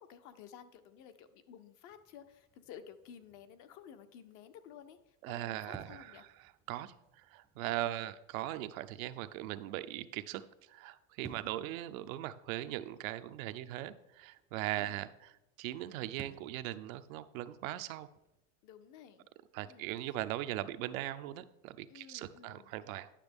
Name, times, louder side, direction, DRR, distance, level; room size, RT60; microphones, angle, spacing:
voice 1, 0.0-5.0 5.3-6.3 7.7-8.0 11.2-11.5 14.7-15.0 18.6-19.3 19.7-20.1 21.9-22.7, left 8 dB, 45° left, 10 dB, 0.6 m, -54 dB
sound 1, 1.9-18.4, right 4 dB, 5° right, 0.4 m, -60 dB
voice 2, 5.2-10.4 10.7-18.1 19.5-23.1, right 14 dB, 70° right, 11 dB, 0.6 m, -40 dB
10.0 x 5.9 x 3.5 m, 0.90 s
supercardioid pair, 135°, 43 cm